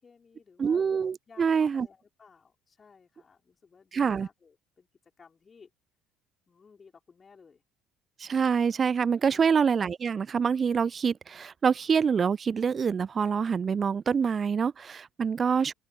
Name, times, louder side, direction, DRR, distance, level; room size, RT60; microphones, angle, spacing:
voice 1, 0.0-0.9 1.3-4.9 5.2-5.7 6.5-7.6 9.3-9.6, left 5 dB, 30° left, 4.6 m, -56 dB
voice 2, 0.6-1.9 3.9-4.3 8.2-15.7, right 6 dB, 30° right, 0.4 m, -26 dB
open air
figure-of-eight pair, 60°, 0 cm